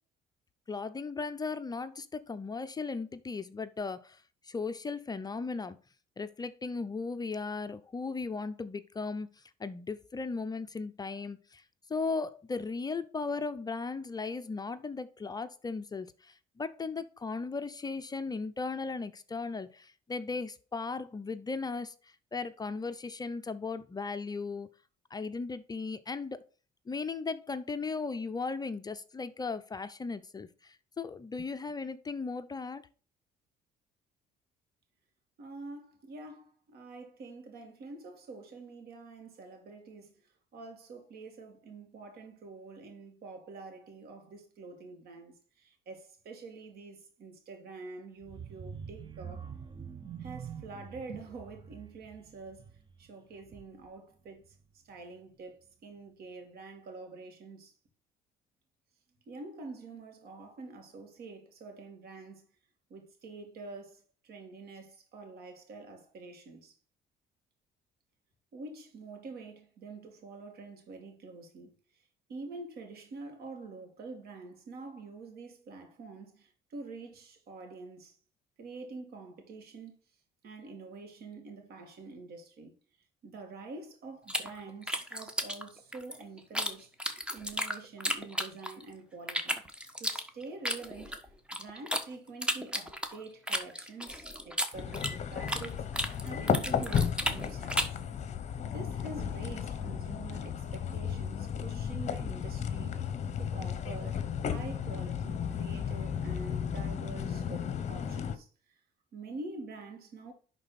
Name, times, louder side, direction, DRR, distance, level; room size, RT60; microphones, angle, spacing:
voice 1, 0.7-5.8 6.2-11.6 11.9-24.7 25.1-26.4 26.9-32.8, left 4 dB, 25° left, 0.6 m, -37 dB
voice 2, 35.4-40.2 40.5-49.5 50.2-52.7 53.0-54.4 54.8-57.7 59.3-62.5 62.9-66.7 68.5-71.7 72.3-78.2 78.6-79.9 80.4-82.7 83.2-89.6 90.0-91.2 91.5-97.9 98.6-103.0 103.4-108.5 109.1-110.3, right 3 dB, 65° right, 2.7 m, -46 dB
sound 1, 48.2-54.0 54.4-54.6 54.9-55.0, right 7 dB, 25° right, 0.8 m, -46 dB
sound 2, 84.3-86.7 87.0-88.9 89.3-92.0 92.4-95.7 95.9-98.0, equal, 5° right, 1.3 m, -33 dB
sound 3, 94.7-108.4, left 7 dB, 45° left, 1.1 m, -34 dB
10.5 x 4.0 x 4.2 m
cardioid pair, 110°, 17 cm